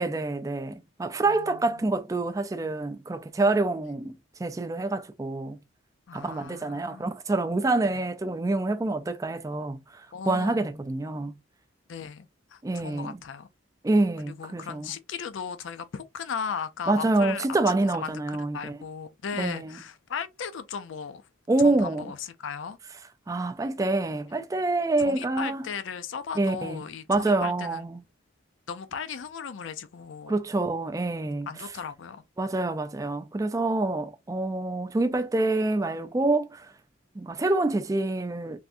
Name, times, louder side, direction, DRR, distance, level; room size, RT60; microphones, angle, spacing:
voice 1, 0.0-5.6 6.1-11.4 12.6-13.2 13.8-14.9 16.9-18.8 19.4-19.8 21.5-22.1 23.3-25.7 26.4-28.0 30.3-31.5 32.4-36.7 37.2-38.6, right 2 dB, 15° right, 0.3 m, -27 dB
voice 2, 1.3-1.9 6.1-7.1 10.1-10.7 11.9-13.5 14.2-17.4 17.9-21.2 21.6-22.8 25.0-27.8 28.7-30.4 31.5-32.2, left 6 dB, 70° left, 0.4 m, -37 dB
3.4 x 2.6 x 2.5 m
head